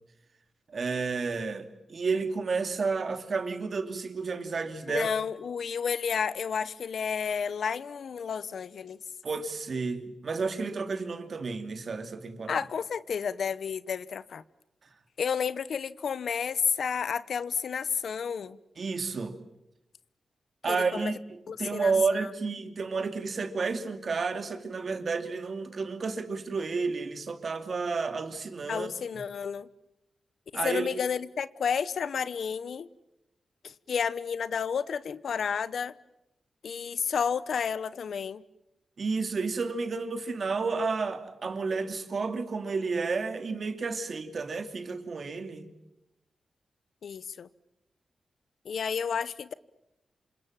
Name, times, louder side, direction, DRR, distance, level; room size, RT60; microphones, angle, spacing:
voice 1, 0.7-5.1 9.2-12.6 18.8-19.4 20.6-21.2 21.6-28.9 30.5-30.9 39.0-45.7, right 4 dB, 55° right, 2.6 m, -31 dB
voice 2, 4.9-9.0 12.5-14.4 15.2-18.6 20.7-21.1 21.5-22.3 28.7-29.7 30.6-32.9 33.6-35.9 36.6-38.4 47.0-47.5 48.6-49.5, left 7 dB, 75° left, 0.9 m, -31 dB
28.0 x 26.5 x 7.5 m
wide cardioid pair, 100°, 0 cm